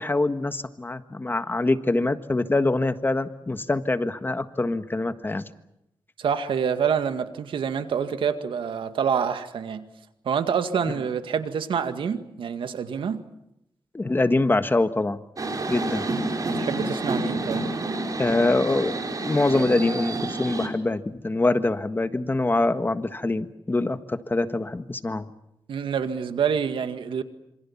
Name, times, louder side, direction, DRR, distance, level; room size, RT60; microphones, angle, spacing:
voice 1, 0.0-5.5 13.9-15.2 15.7-16.1 18.2-25.3, left 2 dB, 25° left, 10 dB, 1.5 m, -24 dB
voice 2, 6.2-9.8 10.3-13.2 16.4-17.6 25.7-27.2, right 7 dB, 85° right, 9 dB, 2.0 m, -27 dB
sound 1, 15.4-20.7, right 2 dB, 45° right, 4.9 m, -29 dB
27.0 x 26.5 x 7.3 m, 0.84 s
cardioid pair, 85°, 8 cm